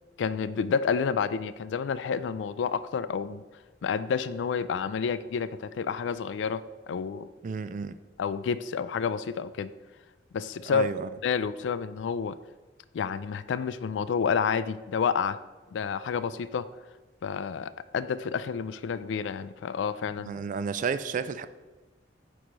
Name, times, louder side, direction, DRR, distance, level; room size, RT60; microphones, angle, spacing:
voice 1, 0.2-3.4 3.8-7.3 8.2-9.7 10.3-10.9 11.2-12.4 12.9-15.4 15.7-16.7 17.2-20.4, left 6 dB, 90° left, 0.3 m, -29 dB
voice 2, 7.4-8.0 10.6-11.1 20.3-21.5, right 5 dB, 45° right, 0.3 m, -31 dB
8.0 x 3.1 x 5.1 m
head